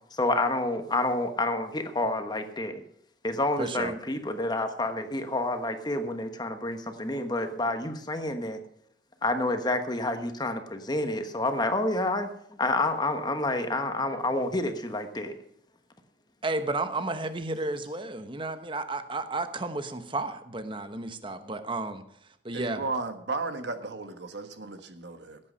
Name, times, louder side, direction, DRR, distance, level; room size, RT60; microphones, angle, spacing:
voice 1, 0.1-2.8 3.2-8.6 9.2-12.3 12.6-15.4, left 2 dB, 20° left, 7 dB, 1.2 m, -29 dB
voice 2, 3.6-4.0 16.4-22.0 22.4-22.9, right 2 dB, 25° right, 9 dB, 1.0 m, -32 dB
voice 3, 22.5-25.4, right 3 dB, 70° right, 7 dB, 1.5 m, -34 dB
16.0 x 8.7 x 5.5 m, 0.73 s
head